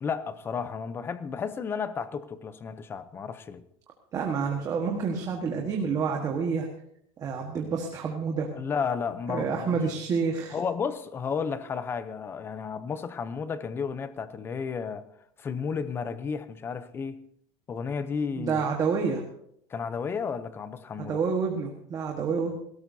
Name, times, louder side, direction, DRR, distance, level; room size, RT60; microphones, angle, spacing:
voice 1, 0.0-3.6 8.5-9.8 10.5-15.0 15.4-17.2 17.7-18.7 19.7-21.2, left 6 dB, 15° left, 0.6 m, -32 dB
voice 2, 4.1-6.7 7.2-8.5 9.3-10.6 18.4-19.2 21.0-22.6, right 5 dB, 25° right, 1.4 m, -28 dB
19.0 x 17.0 x 2.7 m
cardioid pair, 175°, 15 cm